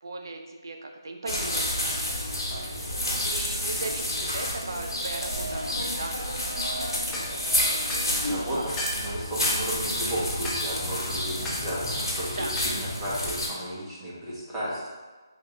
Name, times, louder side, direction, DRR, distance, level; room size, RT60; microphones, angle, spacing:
voice 1, 0.0-2.1 2.5-2.7 3.1-6.3 6.7-8.6 12.2-12.6 12.8-13.1, right 3 dB, 55° right, 3 dB, 0.4 m, -39 dB
sound 1, 1.3-13.5, left 1 dB, 80° left, 1.1 m, -29 dB
sound 2, 7.1-7.3 7.9-8.1 8.8-9.0 9.4-9.6 10.4-10.7 11.5-11.7 12.6-12.8, left 1 dB, 10° left, 0.4 m, -33 dB
voice 2, 8.2-14.9, equal, 10° right, -10 dB, 0.9 m, -34 dB
3.4 x 2.4 x 3.1 m, 1.3 s
figure-of-eight pair, 150°, 2 cm